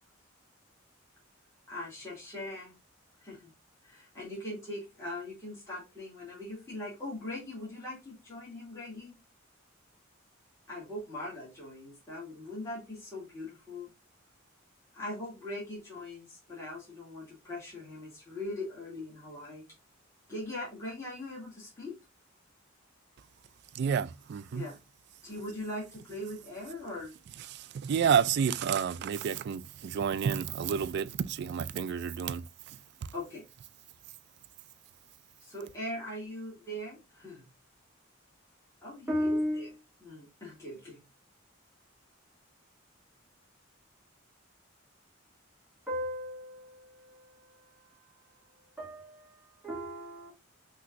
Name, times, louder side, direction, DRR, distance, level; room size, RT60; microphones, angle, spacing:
voice 1, 1.7-2.7 3.2-3.5 3.8-9.2 10.7-13.9 14.9-19.7 20.3-21.9 24.5-24.8 25.2-27.1 33.1-33.4 35.4-37.5 38.8-39.7 40.0-41.1, left 1 dB, 15° left, 1.9 m, -41 dB
voice 2, 23.7-24.7 27.5-33.1, right 7 dB, 55° right, 0.3 m, -30 dB
voice 3, 39.1-39.7 45.9-46.8 48.8-50.3, equal, 5° right, 2.7 m, -34 dB
5.9 x 2.9 x 2.5 m
head